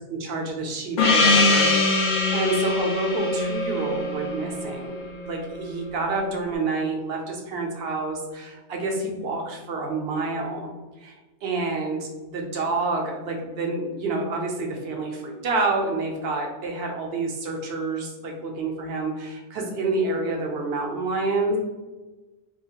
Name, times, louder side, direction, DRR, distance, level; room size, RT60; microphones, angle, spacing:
voice 1, 0.1-1.9 2.3-10.7 11.0-11.1 11.4-21.6, right 3 dB, 70° right, 1 dB, 0.8 m, -28 dB
Gong, 1.0-5.3, left 3 dB, 55° left, 0.6 m, -22 dB
2.8 x 2.3 x 2.8 m, 1.2 s
omnidirectional pair, 1.1 m